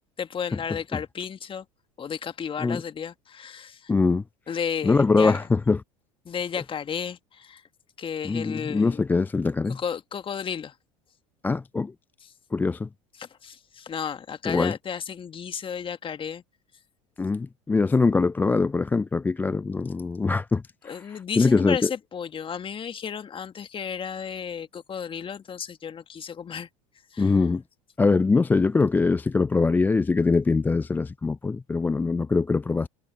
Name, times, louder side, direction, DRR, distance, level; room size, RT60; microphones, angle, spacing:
voice 1, 0.2-1.7 2.0-3.9 4.5-5.4 6.3-7.6 8.0-9.0 9.7-10.7 13.2-16.4 20.8-26.7 27.1-27.3, left 7 dB, 30° left, 1.8 m, -33 dB
voice 2, 3.9-4.2 4.8-5.8 8.2-9.8 11.4-11.9 12.5-12.9 14.5-14.7 17.2-21.9 27.2-27.6 28.0-32.9, left 4 dB, 10° left, 0.3 m, -23 dB
hypercardioid pair, 75°, 18 cm